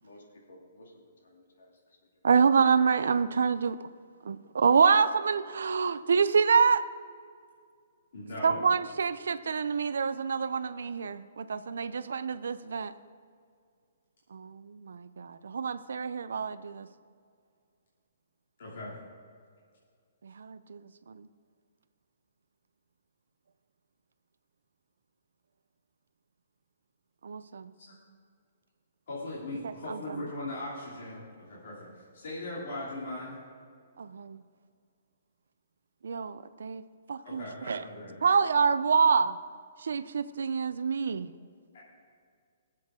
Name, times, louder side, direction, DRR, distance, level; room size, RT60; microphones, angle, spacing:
voice 1, 0.0-1.7, left 1 dB, 85° left, -1 dB, 2.7 m, -55 dB
voice 2, 2.2-3.8 4.3-6.9 8.4-12.9 14.3-16.9 20.2-20.8 21.1-21.3 27.2-27.7 29.6-30.2 34.0-34.4 36.0-36.8 37.1-37.8 38.2-39.4 39.8-41.3, right 5 dB, 85° right, 12 dB, 0.5 m, -27 dB
voice 3, 8.1-8.6 18.6-18.9 27.9-28.0 29.1-33.4 37.2-38.1 41.7-41.8, left 1 dB, 55° left, -7 dB, 2.9 m, -39 dB
20.5 x 7.6 x 3.7 m, 2.2 s
hypercardioid pair, 170°, 0 cm